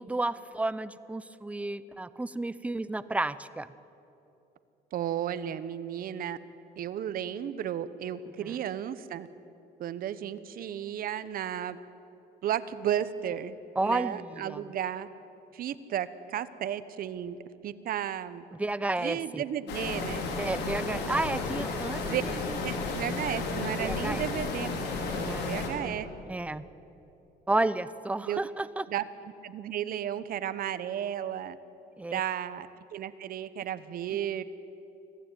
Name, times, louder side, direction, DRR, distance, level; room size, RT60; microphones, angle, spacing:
voice 1, 0.0-3.7 8.4-8.6 13.8-14.6 18.5-19.4 20.4-22.2 22.5-22.6 23.8-24.3 25.1-26.0 26.3-26.6 27.5-28.8 32.0-32.2, right 2 dB, 10° right, 15 dB, 0.7 m, -32 dB
voice 2, 4.9-6.4 6.8-9.3 9.8-11.8 12.4-13.6 13.8-15.1 15.5-17.4 17.6-18.4 19.0-20.3 22.0-22.2 22.6-24.8 25.1-26.1 28.3-28.4 28.9-29.0 29.4-31.6 32.1-34.4, right 10 dB, 60° right, 14 dB, 1.1 m, -33 dB
sound 1, 19.7-25.7, left 3 dB, 80° left, 4.2 m, -33 dB
25.0 x 15.5 x 9.2 m, 3.0 s
cardioid pair, 110°, 17 cm